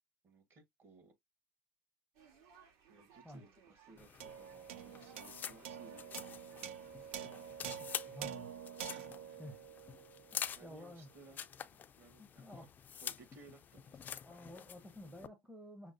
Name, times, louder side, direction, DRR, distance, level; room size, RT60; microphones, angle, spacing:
voice 1, 0.2-1.1 2.9-6.0 6.6-7.5 7.9-8.1 8.9-9.4 10.5-12.6 13.0-14.2, right 3 dB, 35° right, 1.3 m, -61 dB
sound 1, 2.1-8.2, right 6 dB, 60° right, 1.5 m, -64 dB
sound 2, 4.0-15.3, left 8 dB, 30° left, 0.3 m, -48 dB
sound 3, 4.2-10.8, right 9 dB, 85° right, 0.6 m, -47 dB
voice 2, 7.6-8.5 9.4-9.6 10.3-11.1 12.2-12.7 14.2-15.9, equal, 5° right, 0.7 m, -52 dB
6.0 x 2.0 x 2.6 m
supercardioid pair, 110°, 7 cm